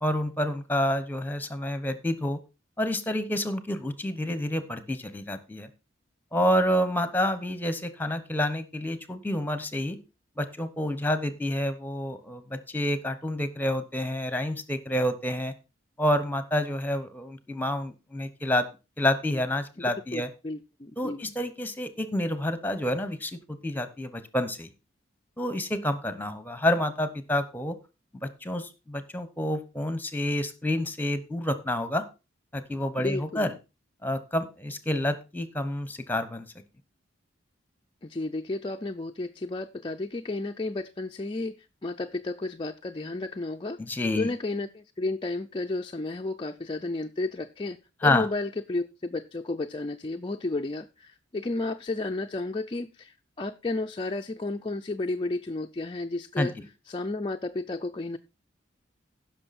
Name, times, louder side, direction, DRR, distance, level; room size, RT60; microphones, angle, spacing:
voice 1, 0.0-2.4 2.8-5.7 6.3-10.0 10.4-15.5 16.0-18.7 19.0-20.3 21.0-24.7 25.4-27.8 28.2-32.0 32.5-33.5 34.0-36.5 43.8-44.3 48.0-48.3 56.4-56.5, left 1 dB, 10° left, 1.0 m, -28 dB
voice 2, 19.9-21.2 33.0-33.5 38.0-43.8 44.2-56.6 56.9-58.2, left 2 dB, 25° left, 0.4 m, -32 dB
15.5 x 6.2 x 4.2 m
head